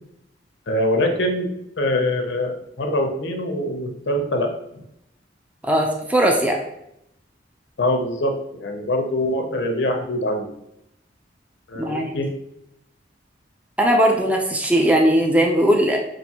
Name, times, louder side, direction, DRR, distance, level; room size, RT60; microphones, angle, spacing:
voice 1, 0.7-1.5 1.8-4.5 7.8-10.5 11.7-12.3, left 1 dB, 80° left, 4 dB, 0.6 m, -23 dB
voice 2, 5.6-6.6 11.8-12.1 13.8-16.0, right 1 dB, 10° right, 1 dB, 0.4 m, -18 dB
5.5 x 2.5 x 2.8 m, 0.80 s
head